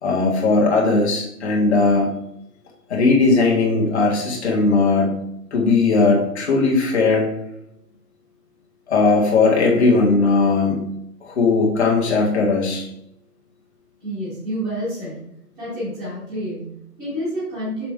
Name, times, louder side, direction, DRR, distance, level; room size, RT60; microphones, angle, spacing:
voice 1, 0.0-2.1 2.9-5.1 5.5-7.3 8.9-10.8 11.2-12.9, left 3 dB, 45° left, -1 dB, 1.8 m, -18 dB
voice 2, 14.0-15.3 15.6-17.9, equal, ahead, -17 dB, 1.1 m, -29 dB
6.1 x 5.8 x 3.7 m, 0.79 s
hypercardioid pair, 170°, 47 cm